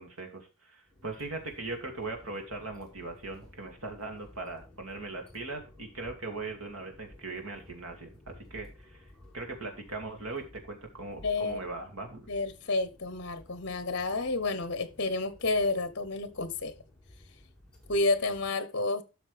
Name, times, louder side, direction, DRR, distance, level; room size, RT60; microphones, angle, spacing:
voice 1, 0.0-12.3, right 3 dB, 80° right, 2.6 m, -40 dB
sound 1, 0.9-18.5, left 1 dB, 5° left, 2.4 m, -55 dB
voice 2, 11.2-11.6 12.3-16.7 17.9-19.0, left 3 dB, 50° left, 0.9 m, -30 dB
12.5 x 6.1 x 3.4 m
head